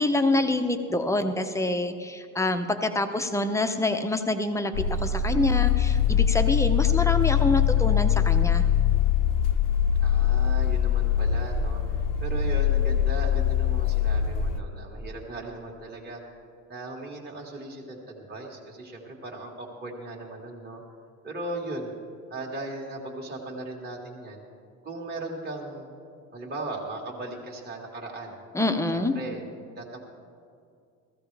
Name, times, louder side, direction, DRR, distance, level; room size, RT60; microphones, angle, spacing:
voice 1, 0.0-8.6 28.5-29.1, left 2 dB, 10° left, 6 dB, 0.7 m, -26 dB
sound 1, 4.7-14.6, left 9 dB, 60° left, 0.7 m, -23 dB
voice 2, 10.0-16.2 16.7-20.8 21.2-21.9 22.3-24.4 24.8-25.9 26.3-28.4 28.9-29.4 29.8-30.0, right 2 dB, 25° right, -2 dB, 1.9 m, -37 dB
16.0 x 14.5 x 3.4 m, 2.4 s
cardioid pair, 115°, 36 cm